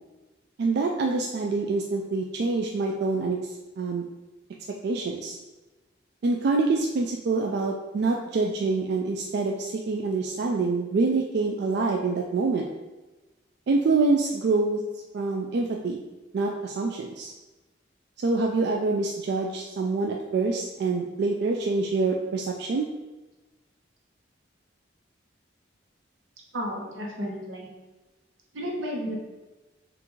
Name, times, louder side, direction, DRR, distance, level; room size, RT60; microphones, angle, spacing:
voice 1, 0.6-4.1 4.8-5.4 6.2-12.7 13.7-14.8 15.1-16.0 16.3-17.3 18.2-22.9, right 3 dB, 55° right, 0 dB, 0.3 m, -26 dB
voice 2, 26.5-27.7 28.5-29.2, equal, 85° right, -1 dB, 1.0 m, -32 dB
5.7 x 2.5 x 3.0 m, 1.1 s
head